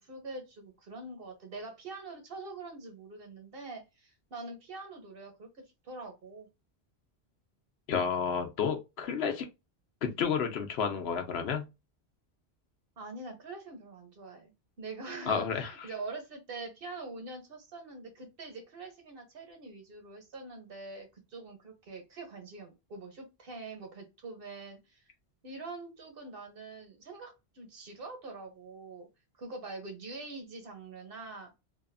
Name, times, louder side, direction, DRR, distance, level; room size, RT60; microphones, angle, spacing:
voice 1, 0.0-6.5 13.0-14.5 14.8-25.0 25.4-29.1 29.4-31.5, right 3 dB, 60° right, 1.1 m, -44 dB
voice 2, 7.9-9.5 10.0-11.7 15.3-15.9, left 6 dB, 75° left, 0.9 m, -31 dB
2.8 x 2.4 x 2.3 m
omnidirectional pair, 1.1 m